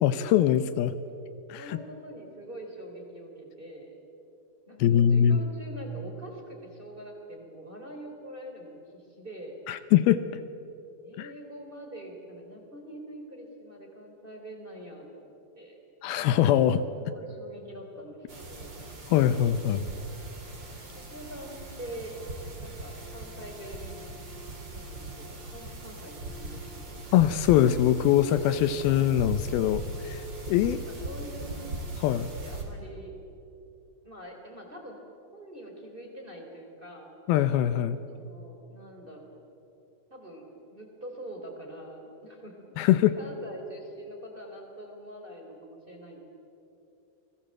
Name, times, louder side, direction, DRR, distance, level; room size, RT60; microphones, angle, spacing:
voice 1, 0.0-0.9 1.5-1.8 4.8-5.4 9.7-10.2 11.2-11.3 16.0-16.8 19.1-19.9 27.1-30.8 32.0-32.3 37.3-38.0 42.8-43.2, left 11 dB, 80° left, 12 dB, 2.5 m, -23 dB
voice 2, 1.5-3.9 4.7-9.5 11.0-15.8 16.9-18.8 21.1-22.1 22.6-24.2 24.7-27.0 30.9-31.7 32.1-33.1 34.0-35.0 35.3-37.1 38.1-39.4 40.1-46.2, right 1 dB, 15° right, 1 dB, 3.1 m, -44 dB
sound 1, 18.3-32.6, right 2 dB, 30° right, 3.5 m, -40 dB
29.0 x 20.5 x 7.7 m, 2.9 s
omnidirectional pair, 4.5 m